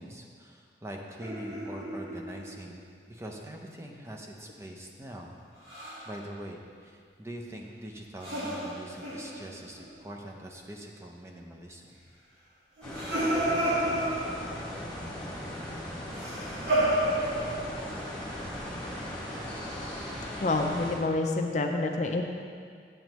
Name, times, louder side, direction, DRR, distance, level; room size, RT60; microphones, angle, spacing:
voice 1, 0.0-5.3 6.1-12.0, right 1 dB, 15° right, 0 dB, 0.6 m, -43 dB
sound 1, 1.2-2.6 5.6-6.1 8.2-9.9 12.8-14.6 16.1-17.9, right 1 dB, 80° right, 1.6 m, -31 dB
sound 2, 12.8-21.0, left 1 dB, 5° left, 1.5 m, -38 dB
voice 2, 20.4-22.2, left 2 dB, 45° left, 4 dB, 0.5 m, -27 dB
8.8 x 7.6 x 3.0 m, 2.2 s
head